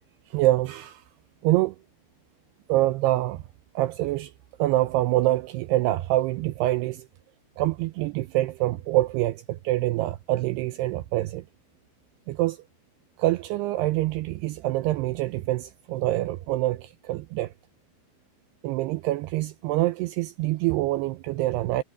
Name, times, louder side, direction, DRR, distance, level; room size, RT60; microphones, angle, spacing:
voice 1, 0.3-1.0 1.4-1.8 2.7-3.4 3.8-4.3 4.6-7.1 7.6-11.4 12.3-12.6 13.2-17.5 18.6-21.8, right 16 dB, 80° right, 2.4 m, -25 dB
omnidirectional pair, 5.3 m